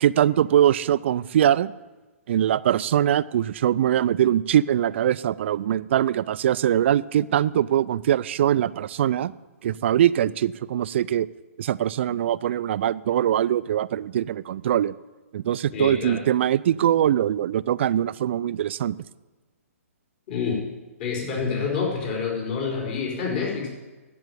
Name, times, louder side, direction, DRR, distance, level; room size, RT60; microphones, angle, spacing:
voice 1, 0.0-1.7 2.3-9.3 9.6-11.3 11.6-14.9 15.3-19.0, right 11 dB, 50° right, 17 dB, 0.4 m, -22 dB
voice 2, 15.7-16.2 20.3-20.6 21.0-23.7, left 5 dB, 40° left, -2 dB, 4.3 m, -27 dB
10.5 x 7.8 x 9.3 m, 1.2 s
hypercardioid pair, 135°, 8 cm